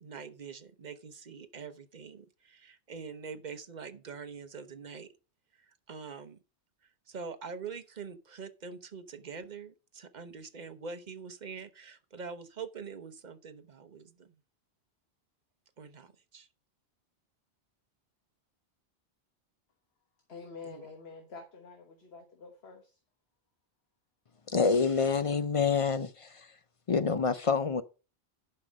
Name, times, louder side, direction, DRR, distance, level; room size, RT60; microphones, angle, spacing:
voice 1, 0.0-5.1 5.7-6.4 7.1-14.3 15.8-16.5 20.6-20.9, right 5 dB, 45° right, 1.0 m, -44 dB
voice 2, 20.3-22.9, left 4 dB, 65° left, 1.5 m, -47 dB
voice 3, 24.5-26.5 26.9-27.8, left 5 dB, 45° left, 0.4 m, -27 dB
10.5 x 5.6 x 5.2 m
omnidirectional pair, 1.1 m